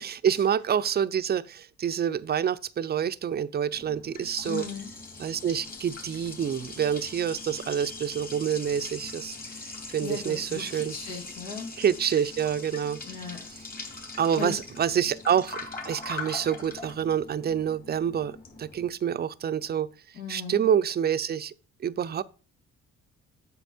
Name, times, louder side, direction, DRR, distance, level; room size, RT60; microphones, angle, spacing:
voice 1, 0.0-4.6 5.2-9.4 9.9-10.9 11.8-13.0 14.2-15.6 15.9-19.9 20.3-21.5 21.8-22.2, right 8 dB, 35° right, 0.5 m, -27 dB
Liquid, 3.7-18.9, left 3 dB, 30° left, 2.3 m, -41 dB
voice 2, 4.4-4.9 10.0-11.8 13.0-13.4 14.3-14.5 20.1-20.6, left 5 dB, 85° left, 2.3 m, -37 dB
8.0 x 5.7 x 4.2 m
cardioid pair, 90°, 30 cm